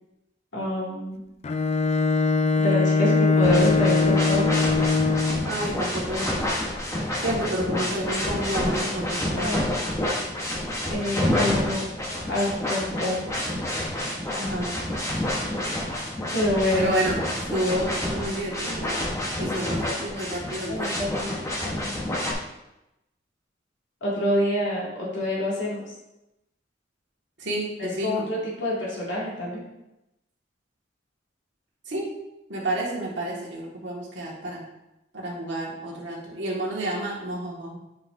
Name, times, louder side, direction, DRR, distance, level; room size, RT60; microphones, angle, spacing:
voice 1, 0.5-1.2 2.5-4.6 7.3-7.4 9.4-9.8 10.9-11.8 12.3-13.2 16.3-17.1 19.4-20.2 20.7-22.0 24.0-25.8 27.8-29.6, left 1 dB, 80° left, -6 dB, 2.3 m, -27 dB
Bowed string instrument, 1.4-5.6, left 4 dB, 35° left, 0.3 m, -21 dB
sound 1, 3.4-22.3, left 1 dB, 15° left, 1.1 m, -29 dB
voice 2, 5.4-6.6 7.2-9.7 14.3-14.8 16.8-20.9 27.4-28.3 31.9-32.1 32.5-34.6 35.1-37.8, right 1 dB, 80° right, -4 dB, 1.8 m, -30 dB
8.3 x 5.0 x 2.6 m, 0.92 s
head